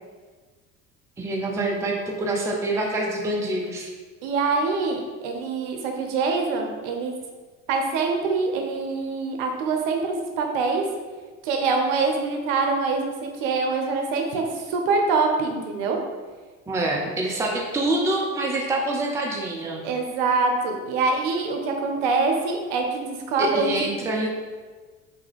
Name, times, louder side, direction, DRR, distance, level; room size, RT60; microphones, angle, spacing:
voice 1, 1.2-3.9 16.7-19.8 23.4-24.3, right 2 dB, 5° right, -1 dB, 0.5 m, -26 dB
voice 2, 4.2-7.1 7.7-10.8 11.4-16.0 19.8-23.9, right 4 dB, 60° right, 3 dB, 0.7 m, -24 dB
3.4 x 2.7 x 3.4 m, 1.4 s
hypercardioid pair, 65°, 41 cm